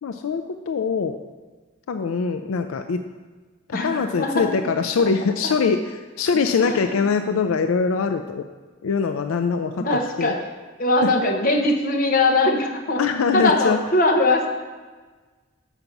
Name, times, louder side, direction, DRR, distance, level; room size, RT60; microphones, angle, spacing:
voice 1, 0.0-1.2 1.9-3.0 3.7-8.5 8.8-9.8 10.2-10.4 11.0-11.1 13.0-13.8, left 5 dB, 80° left, 7 dB, 0.4 m, -23 dB
voice 2, 3.7-4.5 6.6-6.9 9.8-10.5 10.8-13.0 13.3-14.5, left 2 dB, 45° left, 2 dB, 1.0 m, -21 dB
7.1 x 5.8 x 5.3 m, 1.4 s
head